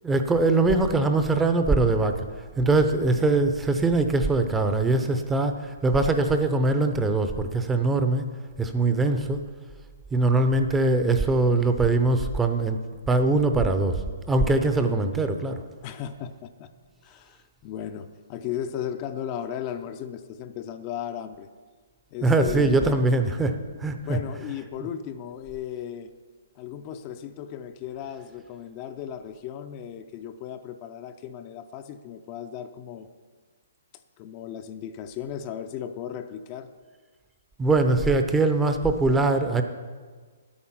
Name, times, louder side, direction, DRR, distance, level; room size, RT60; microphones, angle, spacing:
voice 1, 0.0-2.2 2.6-8.2 8.6-9.4 10.1-12.8 13.1-14.0 14.3-15.6 22.2-24.2 37.6-39.6, right 2 dB, 10° right, 7 dB, 0.6 m, -22 dB
voice 2, 15.8-16.7 17.0-21.5 22.1-23.0 24.0-26.1 26.6-33.1 34.2-36.7, left 9 dB, 30° left, 8 dB, 0.5 m, -36 dB
9.7 x 8.6 x 5.8 m, 1.5 s
hypercardioid pair, 150°, 0 cm